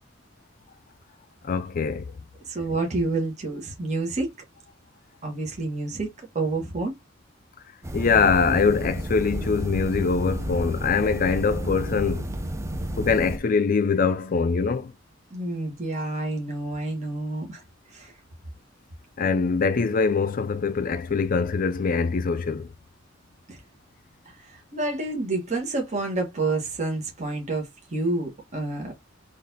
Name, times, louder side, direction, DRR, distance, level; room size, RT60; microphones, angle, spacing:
voice 1, 1.4-2.0 7.9-12.3 13.0-14.9 19.2-22.7, left 5 dB, 45° left, 0.4 m, -23 dB
voice 2, 2.5-4.3 5.2-6.9 15.3-17.6 17.9-18.1 23.5-23.6 24.3-28.9, right 2 dB, 35° right, 1.3 m, -29 dB
sound 1, 7.8-13.4, right 1 dB, 15° right, 0.5 m, -31 dB
4.0 x 3.3 x 2.7 m
head